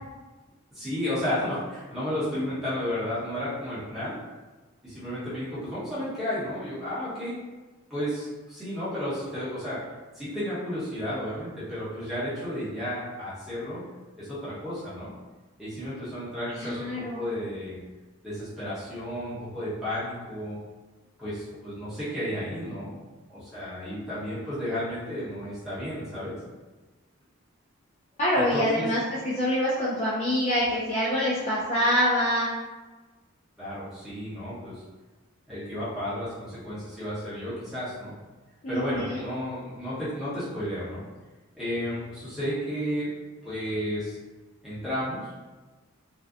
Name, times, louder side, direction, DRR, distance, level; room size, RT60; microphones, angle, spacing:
voice 1, 0.7-4.1 4.8-7.3 7.9-9.8 10.1-13.8 14.2-15.1 15.6-17.8 18.2-20.6 21.2-22.9 23.3-26.3 28.4-28.9 33.6-34.8 35.5-38.1 38.7-41.0 41.6-43.1 43.4-44.2 44.6-45.3, equal, ahead, -12 dB, 0.9 m, -32 dB
voice 2, 16.5-17.3 28.2-32.5 38.6-39.3, equal, 30° left, -8 dB, 0.3 m, -25 dB
2.6 x 2.1 x 2.4 m, 1.2 s
head